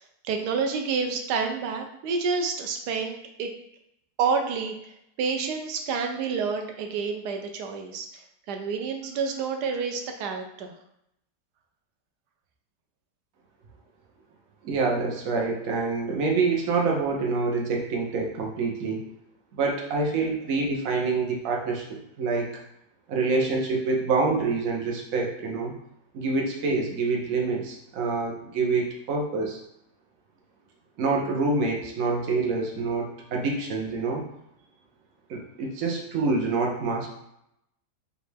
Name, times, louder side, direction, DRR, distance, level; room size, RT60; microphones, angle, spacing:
voice 1, 0.2-3.5 4.2-4.7 5.2-10.7, right 5 dB, 80° right, 4 dB, 1.2 m, -29 dB
voice 2, 14.6-19.1 19.5-22.5 23.1-25.7 26.1-29.6 31.0-34.2 35.3-37.1, right 3 dB, 60° right, 0 dB, 1.1 m, -26 dB
5.1 x 2.5 x 3.3 m, 0.78 s
omnidirectional pair, 1.8 m